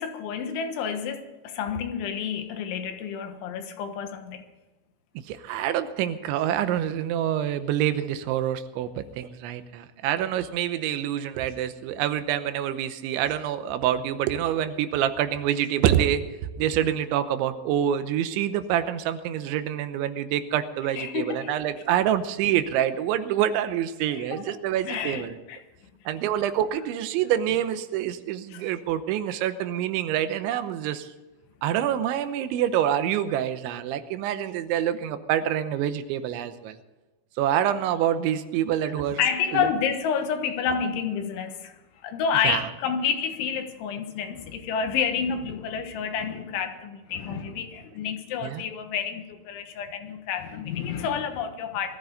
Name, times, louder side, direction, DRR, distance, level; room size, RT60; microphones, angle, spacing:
voice 1, 0.0-4.4 21.0-21.6 24.1-24.4 24.9-25.6 28.5-28.6 39.2-41.7 42.0-52.0, left 7 dB, 85° left, 6 dB, 3.8 m, -29 dB
voice 2, 5.3-16.2 16.6-25.4 26.1-31.1 31.6-36.8 37.4-39.2 39.5-39.7 42.4-42.7 48.4-48.6, right 10 dB, 85° right, 11 dB, 3.2 m, -26 dB
21.0 x 14.0 x 3.9 m, 1.1 s
omnidirectional pair, 5.2 m